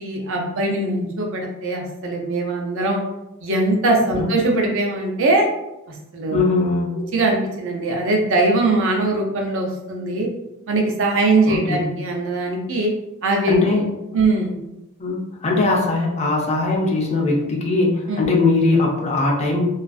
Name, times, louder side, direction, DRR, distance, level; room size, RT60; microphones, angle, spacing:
voice 1, 0.0-3.0 3.4-5.5 6.1-6.4 6.9-10.3 10.7-12.9 13.2-13.6 14.1-14.6 18.1-18.3, right 2 dB, 60° right, 0 dB, 0.5 m, -21 dB
voice 2, 6.3-7.0 11.4-11.9 13.5-13.9 15.0-19.7, left 3 dB, 30° left, -1 dB, 0.4 m, -20 dB
2.4 x 2.3 x 2.3 m, 0.92 s
head